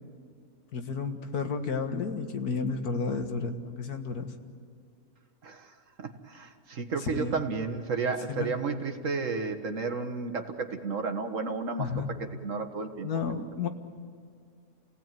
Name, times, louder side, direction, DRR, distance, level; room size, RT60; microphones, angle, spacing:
voice 1, 0.7-4.3 7.0-7.4 8.3-8.5 11.8-12.1 13.0-13.7, left 5 dB, 85° left, 6 dB, 2.1 m, -32 dB
voice 2, 6.0-11.9 12.4-13.5, right 4 dB, 55° right, 6 dB, 1.8 m, -32 dB
29.5 x 17.5 x 9.2 m, 2.3 s
omnidirectional pair, 1.6 m